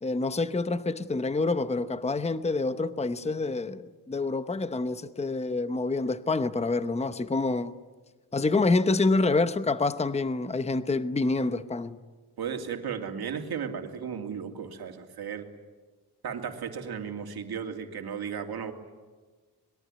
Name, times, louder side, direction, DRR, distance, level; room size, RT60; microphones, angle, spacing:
voice 1, 0.0-7.7 8.3-12.0, left 3 dB, 15° left, 0.9 m, -27 dB
voice 2, 12.4-15.5 16.2-18.7, right 7 dB, 65° right, 2.9 m, -35 dB
25.5 x 22.0 x 9.7 m
wide cardioid pair, 135°, 41 cm